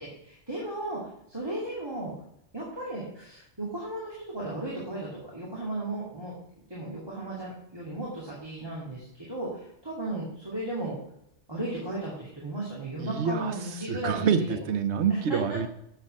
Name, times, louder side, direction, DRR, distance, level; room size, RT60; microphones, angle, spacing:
voice 1, 0.0-2.1 2.5-6.3 6.7-11.0 11.5-14.3 15.3-15.6, right 1 dB, 20° right, -6 dB, 2.4 m, -35 dB
voice 2, 13.0-13.5 13.9-15.7, right 6 dB, 80° right, 10 dB, 1.1 m, -26 dB
7.4 x 6.3 x 6.4 m, 0.75 s
omnidirectional pair, 1.1 m